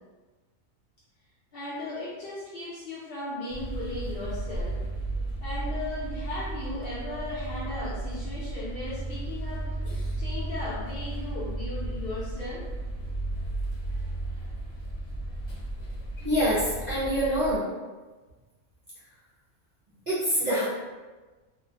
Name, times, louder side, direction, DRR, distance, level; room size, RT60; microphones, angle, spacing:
voice 1, 1.5-4.8 5.4-9.7 10.2-12.7, left 2 dB, 55° left, -8 dB, 0.7 m, -36 dB
sound 1, 3.5-17.6, right 2 dB, 75° left, 1.0 m, -34 dB
voice 2, 16.2-17.6 20.1-20.7, equal, 50° right, -10 dB, 0.5 m, -25 dB
2.5 x 2.1 x 2.7 m, 1.3 s
omnidirectional pair, 1.4 m